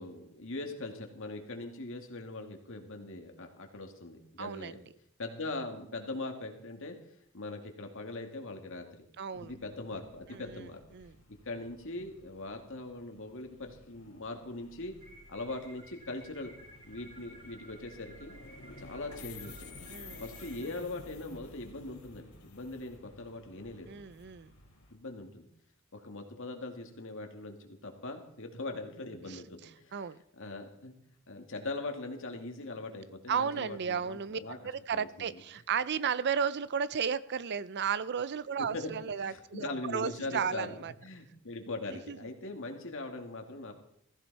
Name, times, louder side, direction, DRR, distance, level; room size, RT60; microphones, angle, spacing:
voice 1, 0.0-4.8 5.2-6.9 7.3-8.9 9.3-10.8 11.5-14.9 15.3-16.5 16.9-18.3 18.8-19.8 20.2-23.9 24.9-25.5 25.9-27.6 27.8-29.9 30.4-30.9 31.3-34.6 34.9-35.4 38.6-38.9 39.2-40.7 41.0-43.7, left 2 dB, 65° left, 4 dB, 2.2 m, -41 dB
voice 2, 4.4-4.8 9.2-9.5 10.3-10.7 10.9-11.1 19.9-20.2 23.9-24.5 29.3-29.4 29.9-30.2 33.3-40.9 41.9-42.2, right 7 dB, 55° right, 17 dB, 0.5 m, -34 dB
sound 1, 9.3-25.0, left 3 dB, 85° left, 3.0 m, -53 dB
sound 2, 15.0-20.8, right 1 dB, 35° right, 5.1 m, -55 dB
16.0 x 15.5 x 4.2 m, 0.74 s
head